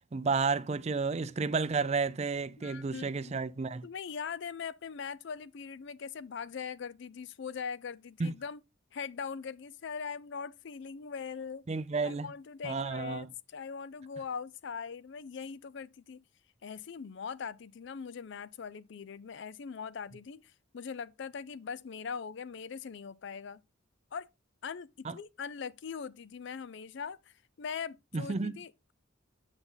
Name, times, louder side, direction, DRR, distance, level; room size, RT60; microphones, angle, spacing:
voice 1, 0.1-3.9 8.2-8.3 11.7-12.3 12.6-13.3 25.0-25.1 28.1-28.5, right 4 dB, 30° right, 0.4 m, -31 dB
voice 2, 2.6-3.4 3.8-8.6 8.9-11.6 12.0-16.2 16.6-23.6 24.1-24.3 24.6-28.9, left 6 dB, 60° left, 0.4 m, -41 dB
8.2 x 5.3 x 3.9 m
head